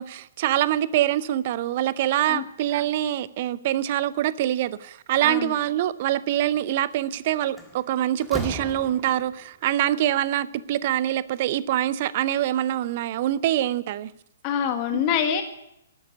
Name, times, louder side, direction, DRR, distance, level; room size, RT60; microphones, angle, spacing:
voice 1, 0.0-14.1 14.9-15.0, right 12 dB, 40° right, 18 dB, 0.6 m, -25 dB
voice 2, 5.2-5.5 14.4-15.4, left 8 dB, 30° left, 6 dB, 1.6 m, -25 dB
Slam, 6.9-7.2 7.6-9.4, equal, ahead, 1.7 m, -36 dB
12.0 x 9.6 x 9.9 m, 0.82 s
figure-of-eight pair, 120°, 0 cm